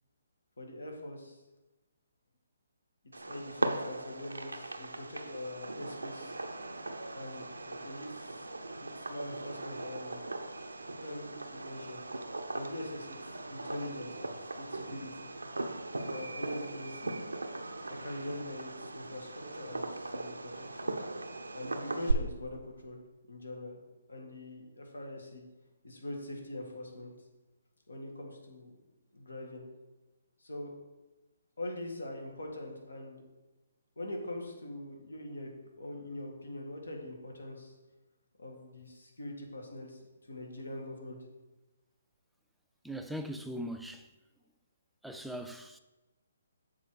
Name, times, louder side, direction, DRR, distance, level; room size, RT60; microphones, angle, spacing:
voice 1, 0.6-1.4 3.2-6.4 7.1-8.4 8.9-10.2 11.0-12.0 12.5-15.3 16.1-17.2 17.9-21.0 21.5-23.0 23.3-23.8 24.1-25.4 25.8-27.1 27.9-28.7 29.1-29.6 30.4-30.7 31.6-33.2 34.0-35.5 35.8-37.8 38.4-41.2, left 1 dB, 80° left, 1.7 m, -43 dB
Fireworks, 3.1-22.1, right 2 dB, 85° right, 0.6 m, -39 dB
voice 2, 42.8-44.1 45.0-45.8, equal, ahead, 0.4 m, -40 dB
7.3 x 4.5 x 4.7 m
figure-of-eight pair, 140°, 0 cm